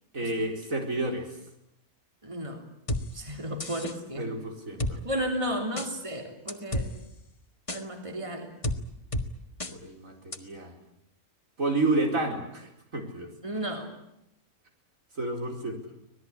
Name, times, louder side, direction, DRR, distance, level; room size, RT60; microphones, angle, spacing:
voice 1, 0.1-1.4 4.2-5.0 9.7-10.7 11.6-13.3 15.1-15.8, right 2 dB, 65° right, 2 dB, 4.8 m, -30 dB
voice 2, 2.2-2.6 3.1-4.3 5.0-6.9 7.7-8.5 13.4-13.9, equal, 20° right, 3 dB, 3.5 m, -33 dB
sound 1, 2.9-3.0 3.6-4.0 4.8-4.9 5.8-5.9 6.5-6.9 7.7-7.8 8.6-8.8 9.1-9.3 9.6-9.7 10.3-10.4, left 1 dB, 25° left, 1.6 m, -30 dB
25.5 x 19.0 x 9.9 m, 0.81 s
omnidirectional pair, 1.5 m